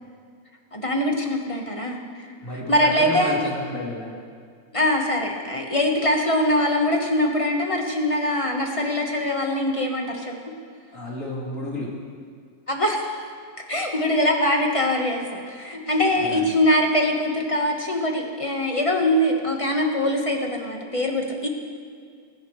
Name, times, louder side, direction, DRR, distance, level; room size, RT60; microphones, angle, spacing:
voice 1, 0.7-2.0 2.5-3.4 4.7-10.4 12.7-13.2 13.7-21.5, left 1 dB, 25° left, 1 dB, 1.3 m, -23 dB
voice 2, 2.4-4.1 10.9-11.9 15.8-16.0 16.3-16.5, left 1 dB, 60° left, -5 dB, 3.5 m, -31 dB
24.0 x 10.5 x 3.2 m, 2.1 s
omnidirectional pair, 1.6 m